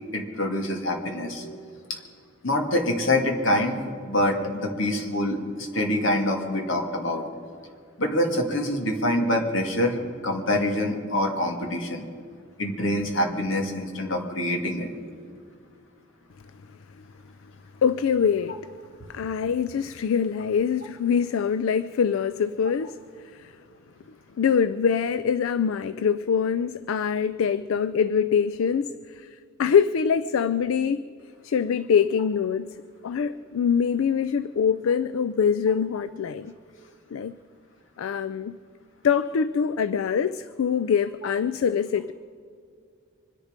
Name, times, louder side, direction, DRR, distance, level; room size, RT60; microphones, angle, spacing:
voice 1, 0.1-1.6 1.9-2.0 2.4-7.2 8.0-12.0 12.6-14.9, left 1 dB, 70° left, 2.2 m, -25 dB
voice 2, 17.8-18.6 19.1-23.5 24.4-31.1 31.4-32.7 33.0-36.5 37.1-37.4 38.0-38.6 39.0-42.1, left 7 dB, 85° left, 0.4 m, -24 dB
24.5 x 10.5 x 5.1 m
head